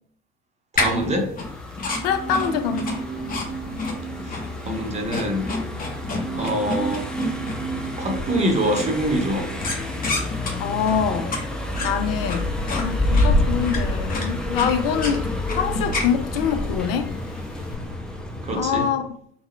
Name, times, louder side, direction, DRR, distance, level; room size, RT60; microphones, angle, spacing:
voice 1, 0.7-1.3 4.3-5.5 6.4-7.0 8.0-9.5 18.4-18.9, right 1 dB, 20° right, 0.8 m, -24 dB
sound 1, 0.8-17.8, left 3 dB, 25° left, 0.9 m, -31 dB
Car passing by, 1.4-18.9, left 1 dB, ahead, 0.5 m, -29 dB
sound 2, 1.7-11.1 11.3-11.4, right 6 dB, 55° right, 0.8 m, -36 dB
voice 2, 2.0-2.9 10.6-11.3 11.8-15.3 15.5-17.1 18.5-19.0, left 8 dB, 60° left, 0.5 m, -24 dB
3.6 x 2.2 x 3.1 m
figure-of-eight pair, 65°, 32 cm